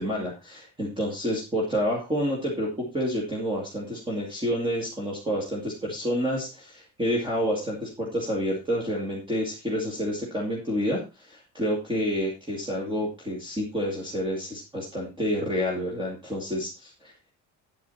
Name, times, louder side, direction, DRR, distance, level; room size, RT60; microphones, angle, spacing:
voice 1, 0.0-17.1, equal, 15° right, -2 dB, 2.4 m, -29 dB
9.5 x 9.1 x 4.3 m, 0.28 s
cardioid pair, 180°, 32 cm